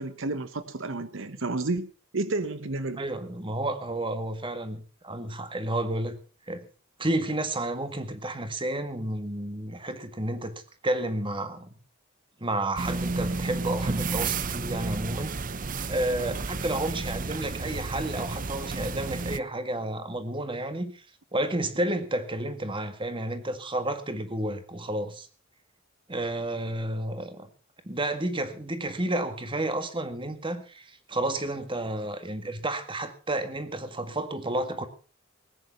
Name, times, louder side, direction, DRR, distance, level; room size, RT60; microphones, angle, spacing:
voice 1, 0.0-3.0, right 2 dB, 65° right, 12 dB, 1.0 m, -31 dB
voice 2, 3.0-6.2 6.5-6.7 7.0-11.7 12.4-15.3 15.9-20.9 21.3-25.3 26.1-27.5 27.9-34.9, right 1 dB, 25° right, 9 dB, 1.8 m, -31 dB
sound 1, 12.8-19.4, right 3 dB, 40° right, 0.7 m, -31 dB
19.5 x 9.7 x 5.9 m, 0.38 s
head